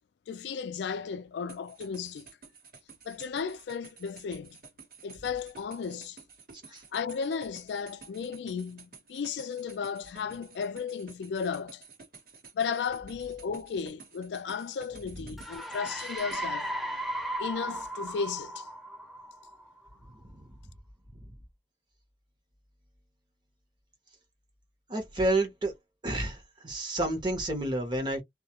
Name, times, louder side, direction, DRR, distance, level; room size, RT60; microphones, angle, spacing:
voice 1, 0.3-2.3 3.0-4.6 5.0-6.2 6.9-11.8 12.5-16.7 17.4-18.7, left 6 dB, 70° left, 0.3 m, -34 dB
sound 1, 1.5-16.4, right 5 dB, 55° right, 1.1 m, -52 dB
sound 2, 15.4-19.9, equal, ahead, 0.4 m, -36 dB
voice 2, 24.9-25.7 26.0-28.2, right 2 dB, 25° right, 0.9 m, -30 dB
2.3 x 2.1 x 2.8 m
head